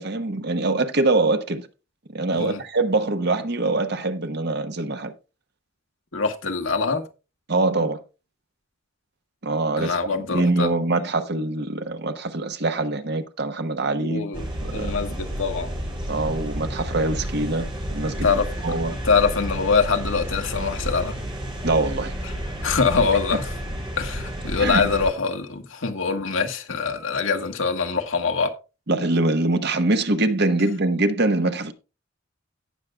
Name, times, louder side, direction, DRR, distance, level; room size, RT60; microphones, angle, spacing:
voice 1, 0.0-1.7 2.1-5.1 7.5-8.0 9.4-10.0 10.3-14.3 14.6-15.0 16.1-18.9 21.6-22.1 24.6-24.9 28.9-31.7, right 2 dB, 55° right, 1.1 m, -24 dB
voice 2, 6.1-7.1 9.8-10.7 14.0-14.5 14.7-15.7 18.2-18.8 19.0-21.2 22.6-23.4 24.0-28.5, left 5 dB, 75° left, 1.5 m, -24 dB
sound 1, 14.3-25.1, equal, 25° right, 4.2 m, -31 dB
17.5 x 6.5 x 2.3 m
head